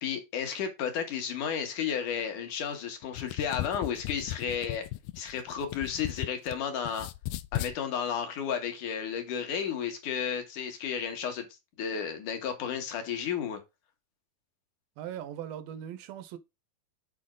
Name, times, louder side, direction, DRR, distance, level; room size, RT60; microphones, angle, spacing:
voice 1, 0.0-4.9 5.2-7.1 7.5-11.5 11.8-13.6, left 7 dB, 65° left, 2.7 m, -33 dB
sound 1, 3.0-6.6 6.9-7.8, left 16 dB, 80° left, 2.1 m, -36 dB
voice 2, 15.0-16.4, right 10 dB, 75° right, 2.4 m, -39 dB
7.8 x 4.4 x 3.7 m
omnidirectional pair, 4.3 m